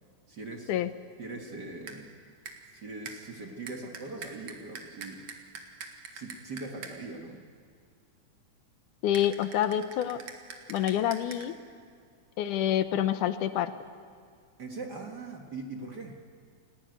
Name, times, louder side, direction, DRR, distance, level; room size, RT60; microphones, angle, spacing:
voice 1, 0.3-0.7 1.2-2.1 2.7-5.2 6.1-7.4 14.6-16.2, right 3 dB, 40° right, 2 dB, 1.9 m, -41 dB
sound 1, 1.4-1.6 1.9-2.1 2.5-2.8 3.0-7.2 9.1-11.5, right 5 dB, 60° right, 2.9 m, -45 dB
voice 2, 9.0-10.2 10.7-11.5 12.4-13.7, left 11 dB, 80° left, 11 dB, 2.4 m, -27 dB
29.5 x 18.0 x 9.4 m, 2.1 s
omnidirectional pair, 3.6 m